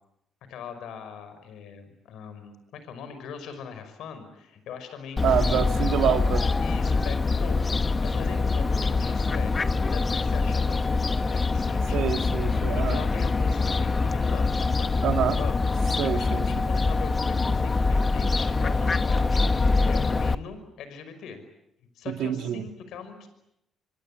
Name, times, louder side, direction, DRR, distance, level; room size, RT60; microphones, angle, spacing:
voice 1, 0.5-5.6 6.6-9.5 9.9-12.1 12.5-15.5 15.8-21.4 21.9-23.3, left 6 dB, 80° left, 5.6 m, -41 dB
Fowl, 5.2-20.4, left 3 dB, 30° left, 1.1 m, -24 dB
voice 2, 5.2-6.5 11.9-13.0 15.0-15.4 16.0-16.6 22.1-22.6, right 10 dB, 80° right, 2.1 m, -27 dB
25.0 x 25.0 x 8.8 m
cardioid pair, 90°, 0 cm